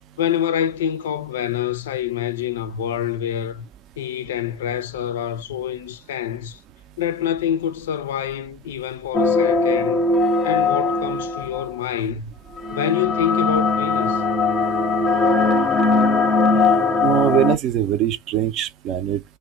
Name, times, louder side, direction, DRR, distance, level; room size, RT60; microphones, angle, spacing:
voice 1, 0.2-3.7 4.0-6.6 7.0-10.1 10.4-12.3 12.7-14.2, left 10 dB, 55° left, 0.4 m, -26 dB
sound 1, 9.1-11.7 12.6-17.6, left 3 dB, 20° left, 0.7 m, -19 dB
voice 2, 17.0-19.2, right 11 dB, 35° right, 0.5 m, -21 dB
3.0 x 2.1 x 3.6 m
figure-of-eight pair, 90°, 0 cm